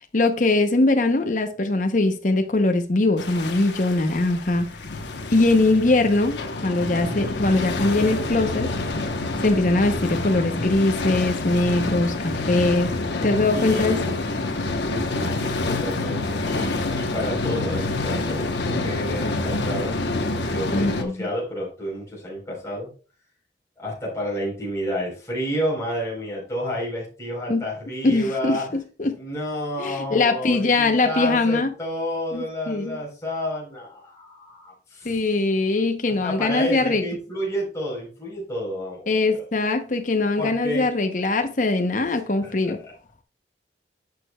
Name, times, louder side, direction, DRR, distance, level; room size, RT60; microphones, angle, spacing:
voice 1, 0.1-4.6 5.3-8.7 9.4-12.9 13.2-14.0 20.7-21.1 27.5-27.6 28.0-29.2 29.8-31.7 32.3-33.0 35.0-37.0 39.1-42.8, left 2 dB, 45° left, 0.8 m, -21 dB
sound 1, 3.2-21.0, left 2 dB, 85° left, 1.0 m, -27 dB
voice 2, 13.5-14.2 14.8-20.0 20.5-22.9 23.8-28.8 29.1-35.2 36.2-39.2 40.4-40.9 42.4-42.5 42.8-42.9, equal, 15° left, 3.9 m, -30 dB
10.5 x 6.7 x 2.3 m
head